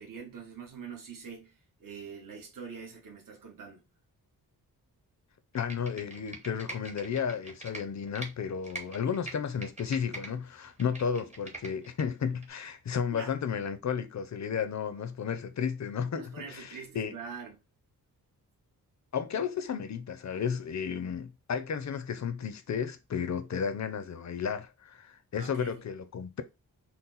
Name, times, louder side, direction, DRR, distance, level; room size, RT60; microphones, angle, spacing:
voice 1, 0.0-3.8 13.1-13.3 15.0-15.1 16.1-17.6 25.3-25.8, right 6 dB, 60° right, 1.2 m, -44 dB
voice 2, 5.5-17.1 19.1-26.4, left 7 dB, 45° left, 0.6 m, -33 dB
Computer keyboard, 5.5-8.3 8.6-10.3 10.6-12.0 12.4-12.5, right 2 dB, 20° right, 0.9 m, -43 dB
4.2 x 2.1 x 3.9 m
wide cardioid pair, 120°, 38 cm